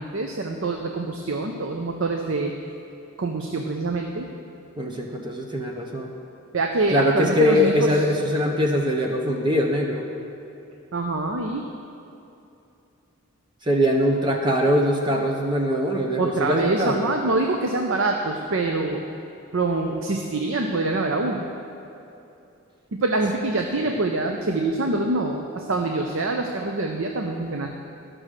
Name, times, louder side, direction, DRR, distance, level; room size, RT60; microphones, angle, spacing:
voice 1, 0.0-2.5 3.2-4.3 6.5-8.0 10.9-11.7 16.2-19.0 19.5-21.4 22.9-27.7, right 2 dB, 60° right, 3 dB, 0.6 m, -25 dB
voice 2, 4.8-6.1 6.9-10.0 13.6-17.1, equal, 20° right, 1 dB, 0.7 m, -22 dB
12.5 x 6.2 x 6.5 m, 2.7 s
head